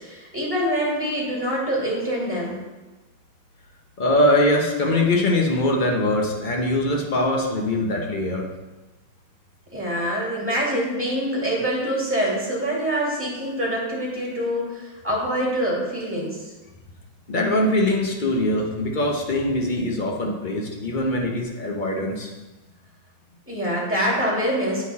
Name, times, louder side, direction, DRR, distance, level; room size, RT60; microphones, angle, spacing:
voice 1, 0.0-2.6 9.7-16.5 23.5-24.8, equal, 5° right, -5 dB, 2.2 m, -25 dB
voice 2, 4.0-8.5 17.3-22.3, left 1 dB, 55° left, 0 dB, 0.5 m, -22 dB
11.0 x 4.1 x 4.1 m, 1.2 s
omnidirectional pair, 2.2 m